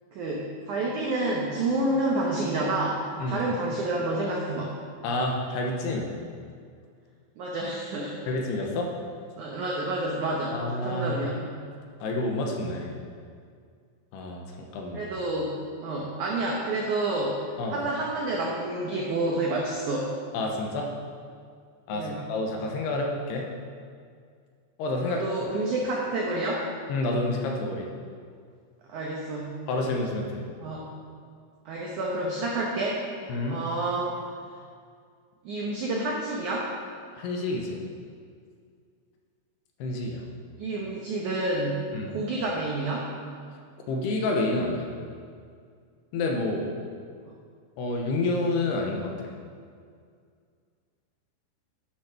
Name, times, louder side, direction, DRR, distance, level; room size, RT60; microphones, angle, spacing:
voice 1, 0.1-4.8 7.4-8.2 9.4-11.4 14.9-17.4 17.7-20.1 21.9-22.2 25.0-26.7 28.9-29.5 30.6-30.9 31.6-33.0 33.5-34.2 35.4-36.7 40.6-43.1 47.3-47.4, right 2 dB, 85° right, -2 dB, 1.7 m, -29 dB
voice 2, 5.0-6.1 8.3-8.9 10.5-11.2 12.0-13.0 14.1-15.1 17.6-17.8 20.3-20.9 21.9-23.5 24.8-25.2 26.9-27.9 29.7-30.4 33.3-33.6 37.2-37.8 39.8-40.2 41.9-42.2 43.9-44.9 46.1-46.7 47.8-49.1, left 2 dB, 80° left, 1 dB, 2.9 m, -29 dB
10.0 x 6.3 x 5.8 m, 2.2 s
omnidirectional pair, 5.0 m